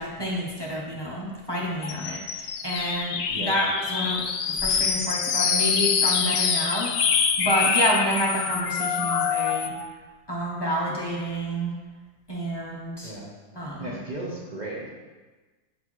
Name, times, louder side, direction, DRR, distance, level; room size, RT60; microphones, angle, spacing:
voice 1, 0.0-9.8 10.3-11.7 12.3-13.1 13.6-14.0, equal, 25° left, -5 dB, 0.5 m, -29 dB
sound 1, 1.8-9.8, left 6 dB, 70° left, 0.8 m, -25 dB
voice 2, 3.3-3.7 13.0-13.3 13.8-14.9, right 2 dB, 40° right, -6 dB, 0.7 m, -35 dB
7.6 x 4.1 x 3.0 m, 1.3 s
omnidirectional pair, 1.7 m